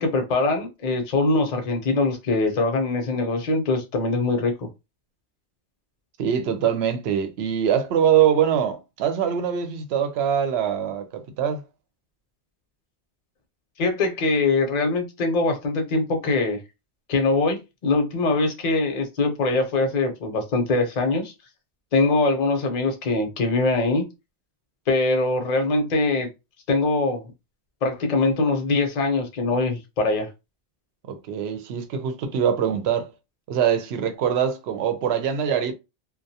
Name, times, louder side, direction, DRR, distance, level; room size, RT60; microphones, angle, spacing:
voice 1, 0.0-4.7 13.8-16.6 17.1-21.3 21.9-24.0 24.9-26.3 26.7-27.3 27.8-30.3, left 3 dB, 45° left, 0.6 m, -23 dB
voice 2, 6.2-11.6 31.1-33.1 33.5-35.7, right 8 dB, 80° right, 0.8 m, -23 dB
2.3 x 2.1 x 2.7 m
omnidirectional pair, 1.1 m